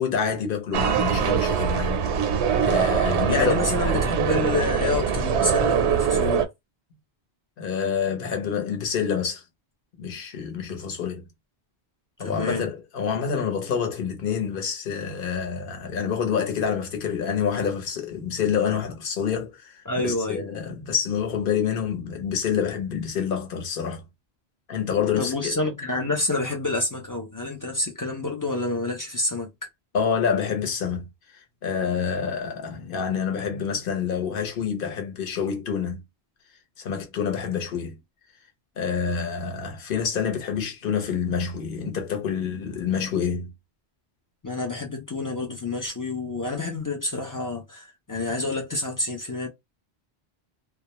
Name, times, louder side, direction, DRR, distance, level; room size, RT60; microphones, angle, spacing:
voice 1, 0.0-4.1 7.6-9.4 10.0-11.2 12.2-24.0 24.7-25.6 29.9-31.1 31.6-36.0 36.8-37.9 38.8-43.5, left 7 dB, 60° left, 0.9 m, -27 dB
sound 1, 0.7-6.4, right 7 dB, 85° right, 0.9 m, -23 dB
voice 2, 3.3-6.5 12.2-12.6 19.9-20.4 25.2-29.5 44.4-49.5, left 2 dB, 30° left, 0.4 m, -28 dB
2.2 x 2.1 x 2.9 m
omnidirectional pair, 1.1 m